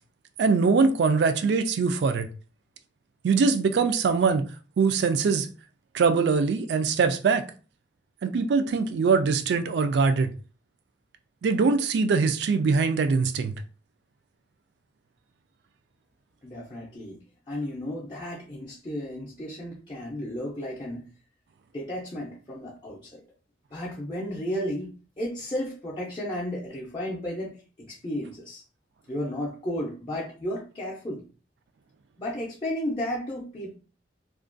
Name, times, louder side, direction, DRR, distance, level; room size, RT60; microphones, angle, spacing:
voice 1, 0.4-2.3 3.2-4.5 4.8-5.5 5.9-7.5 8.2-10.3 11.4-13.5, right 4 dB, 70° right, 0.3 m, -22 dB
voice 2, 16.4-17.2 17.5-21.0 21.7-23.2 23.7-28.6 29.1-31.2 32.2-33.7, equal, 25° left, 0.5 m, -33 dB
2.4 x 2.2 x 2.5 m
head